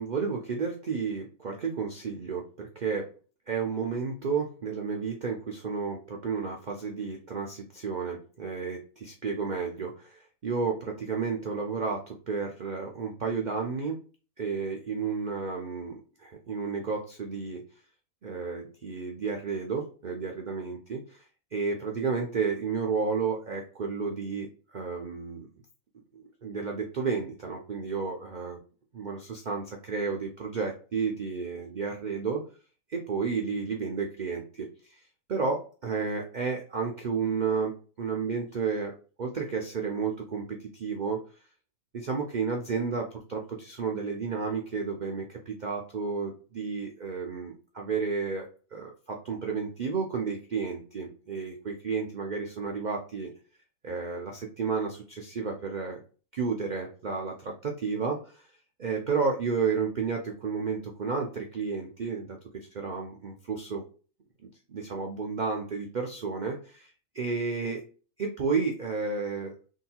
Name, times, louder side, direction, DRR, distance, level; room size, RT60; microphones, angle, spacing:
voice 1, 0.0-3.1 3.5-14.0 14.4-17.6 18.2-21.2 21.5-25.5 26.2-28.6 28.9-32.4 32.9-41.2 41.9-53.3 53.8-56.0 56.3-58.5 58.8-63.8 64.7-67.8 68.2-69.5, right 5 dB, 65° right, 1 dB, 0.4 m, -32 dB
3.7 x 2.3 x 2.8 m, 0.38 s
omnidirectional pair, 1.5 m